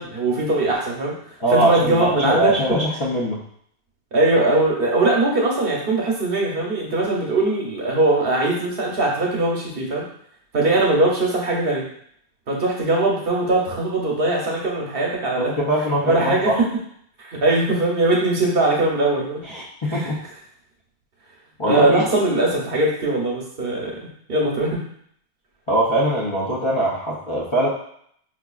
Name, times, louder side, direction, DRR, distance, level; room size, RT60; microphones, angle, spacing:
voice 1, 0.0-2.8 4.1-10.1 10.5-11.8 12.5-15.5 16.0-16.5 17.2-19.4 19.9-20.0 21.7-24.0 24.3-24.8, right 2 dB, 60° right, -2 dB, 1.0 m, -21 dB
voice 2, 1.4-3.4 15.4-16.7 19.4-20.2 21.6-22.1 25.7-27.7, right 1 dB, 35° left, -7 dB, 0.5 m, -22 dB
4.5 x 2.5 x 2.3 m, 0.66 s
omnidirectional pair, 1.1 m